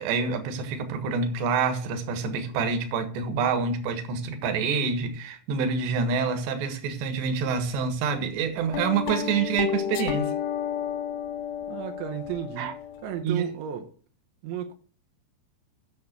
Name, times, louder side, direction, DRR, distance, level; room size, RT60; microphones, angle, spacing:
voice 1, 0.0-10.3 12.6-12.7 13.2-13.5, right 5 dB, 75° right, 3.6 m, -27 dB
sound 1, 8.7-13.2, left 10 dB, 80° left, 2.1 m, -31 dB
voice 2, 11.7-12.7 13.0-13.9 14.4-14.7, right 9 dB, 90° right, 3.5 m, -33 dB
9.6 x 6.9 x 8.0 m
omnidirectional pair, 5.2 m